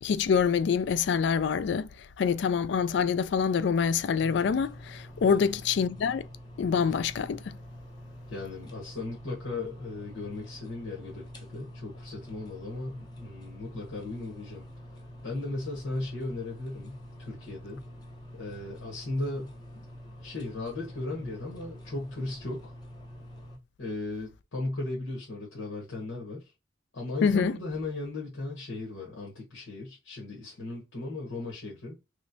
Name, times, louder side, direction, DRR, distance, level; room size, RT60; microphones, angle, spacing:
voice 1, 0.0-6.2 6.6-7.6 27.2-27.5, left 6 dB, 60° left, 0.3 m, -26 dB
sound 1, 4.2-23.6, equal, 20° left, 0.6 m, -46 dB
voice 2, 8.3-14.7 15.2-17.9 18.3-19.8 20.2-22.7 23.8-26.5 26.9-32.0, left 2 dB, 85° left, 1.2 m, -37 dB
3.2 x 3.1 x 2.5 m
head